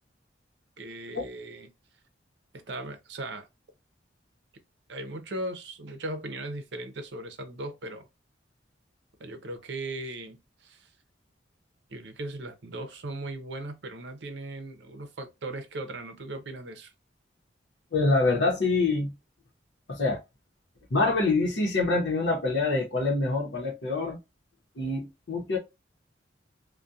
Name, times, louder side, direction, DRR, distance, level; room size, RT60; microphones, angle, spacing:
voice 1, 0.8-1.7 2.5-3.5 4.9-8.1 9.2-10.9 11.9-16.9, right 2 dB, 70° right, 0.6 m, -38 dB
voice 2, 17.9-19.1 19.9-20.2 20.9-24.2 24.8-25.6, left 3 dB, 75° left, 0.8 m, -25 dB
2.3 x 2.2 x 2.6 m
head